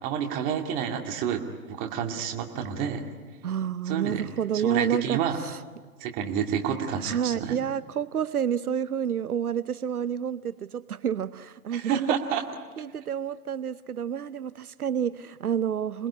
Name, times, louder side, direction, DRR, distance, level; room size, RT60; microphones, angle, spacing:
voice 1, 0.0-3.1 3.9-4.2 4.5-5.4 6.0-7.6 11.7-12.4, right 8 dB, 20° right, 3 dB, 2.2 m, -29 dB
voice 2, 3.4-5.6 7.0-12.2 12.8-16.1, right 8 dB, 75° right, 16 dB, 0.9 m, -29 dB
27.5 x 20.0 x 9.8 m, 1.4 s
hypercardioid pair, 145°, 45 cm